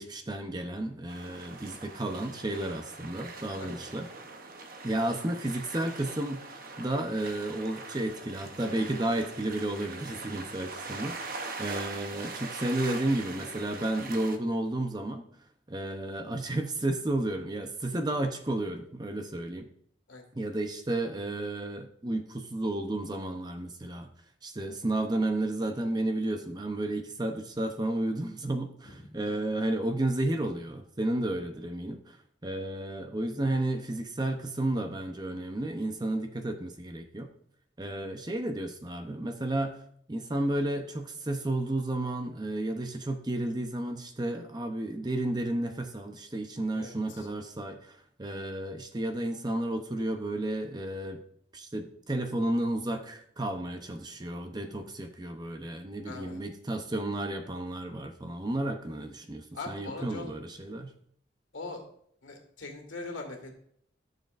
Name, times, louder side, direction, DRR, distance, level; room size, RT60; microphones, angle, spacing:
voice 1, 0.0-4.1 4.8-15.3 15.7-19.7 20.3-24.1 24.4-32.2 32.4-37.3 37.8-39.8 40.1-51.2 51.5-60.9, right 1 dB, 20° right, 6 dB, 0.7 m, -32 dB
sound 1, 1.1-14.4, right 3 dB, 50° right, 0.9 m, -42 dB
voice 2, 28.9-29.5 46.7-47.3 56.0-56.4 59.5-60.3 61.5-61.8 62.2-63.5, left 3 dB, 80° left, 3 dB, 1.9 m, -41 dB
13.5 x 6.6 x 2.5 m, 0.66 s
head